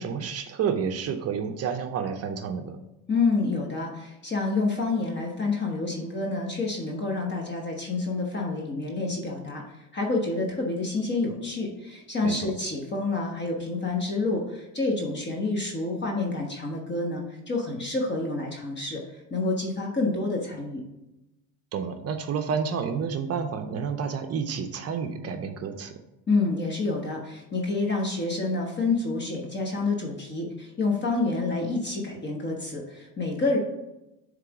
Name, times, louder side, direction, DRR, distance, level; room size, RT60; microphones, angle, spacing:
voice 1, 0.0-2.8 12.2-12.5 21.7-25.9, right 6 dB, 35° right, 7 dB, 0.6 m, -30 dB
voice 2, 3.1-9.6 9.9-20.8 26.3-33.6, left 3 dB, 25° left, 0 dB, 1.2 m, -28 dB
7.4 x 3.4 x 4.8 m, 0.93 s
supercardioid pair, 110°, 41 cm